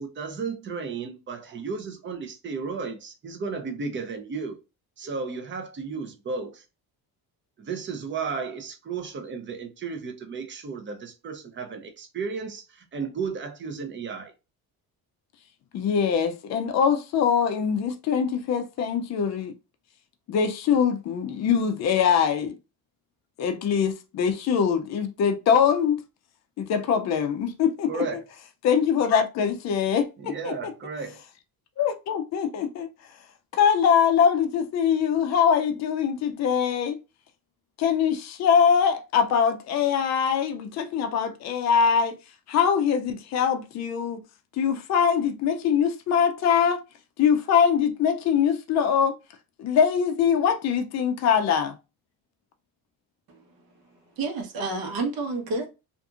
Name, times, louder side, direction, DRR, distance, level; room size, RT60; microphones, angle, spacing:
voice 1, 0.0-4.6 5.0-6.6 7.6-14.3 27.9-28.2 30.2-31.2, right 5 dB, 30° right, 0.5 m, -34 dB
voice 2, 15.7-19.5 20.3-22.6 23.4-26.0 26.6-28.1 28.6-30.7 31.8-32.9 33.5-37.0 37.8-42.2 42.5-44.2 44.6-46.8 47.2-49.1 49.6-51.8, left 7 dB, 45° left, 0.4 m, -23 dB
voice 3, 53.3-55.7, right 3 dB, 65° right, 1.0 m, -31 dB
2.7 x 2.5 x 2.3 m
cardioid pair, 145°, 38 cm